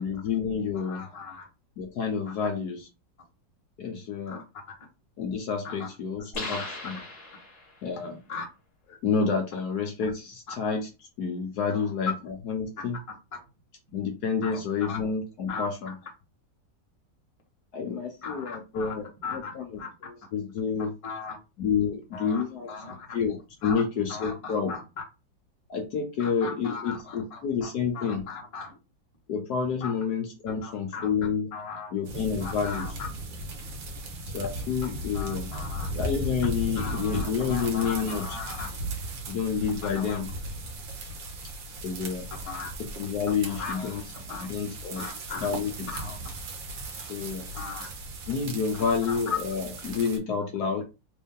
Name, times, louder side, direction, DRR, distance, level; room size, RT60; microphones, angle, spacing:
voice 1, 0.0-1.0 1.8-2.9 3.8-4.4 5.2-7.0 7.8-8.2 9.0-10.9 11.2-13.0 13.9-15.9 17.7-19.7 20.0-20.9 21.6-22.7 23.1-24.7 25.7-28.3 29.3-31.5 31.9-32.9 34.3-35.5 35.9-38.4 39.3-40.3 41.8-42.3 42.8-44.0 44.4-45.1 45.4-45.9 47.0-47.5 48.3-50.8, left 6 dB, 65° left, 4 dB, 1.2 m, -29 dB
voice 2, 0.8-1.5 4.3-4.4 5.6-5.9 6.5-6.7 8.3-8.5 11.7-11.9 13.3-13.4 14.4-15.0 15.5-15.7 18.2-18.9 19.2-19.9 21.0-21.4 22.1-23.2 23.6-23.8 24.1-24.8 26.2-27.7 27.9-28.7 29.8-29.9 30.6-31.1 31.5-31.9 32.4-32.9 35.1-35.9 36.8-38.8 39.9-40.2 42.4-42.7 43.4-44.5 44.9-45.5 45.9-46.2 47.5-47.9 48.7-49.4, left 5 dB, 25° left, -1 dB, 0.9 m, -38 dB
sound 1, 6.3-7.9, left 2 dB, 45° left, 1.3 m, -38 dB
sound 2, 32.0-50.2, right 1 dB, 85° right, 1.7 m, -37 dB
3.7 x 2.6 x 3.6 m, 0.28 s
omnidirectional pair, 2.0 m